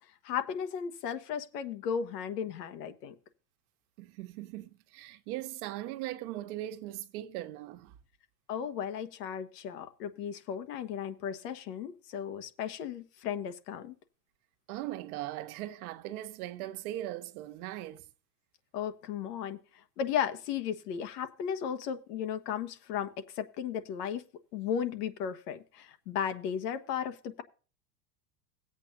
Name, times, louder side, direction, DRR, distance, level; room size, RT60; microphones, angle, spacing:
voice 1, 0.2-3.1 8.5-13.9 18.7-24.2 24.5-27.4, left 8 dB, 70° left, 1.5 m, -35 dB
voice 2, 4.0-7.9 14.7-18.0, right 14 dB, 60° right, 1.3 m, -39 dB
17.0 x 8.3 x 2.6 m
supercardioid pair, 120°, 49 cm